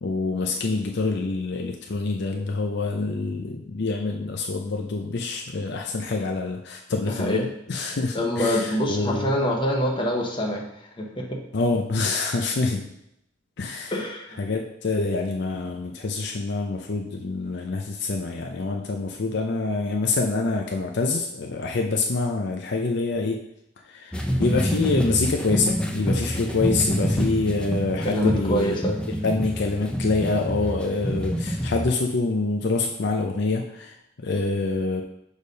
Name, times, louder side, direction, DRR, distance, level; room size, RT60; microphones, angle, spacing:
voice 1, 0.0-9.3 11.5-12.9 13.6-14.0 14.4-23.4 23.8-28.9 29.2-35.0, left 3 dB, 60° left, 2 dB, 0.6 m, -26 dB
voice 2, 7.1-7.5 8.1-10.6 11.0-11.4 13.9-14.3 28.0-28.9, equal, 25° left, 0 dB, 1.1 m, -25 dB
sound 1, 24.1-31.9, equal, 5° left, 0.5 m, -27 dB
6.5 x 3.5 x 5.2 m, 0.80 s
head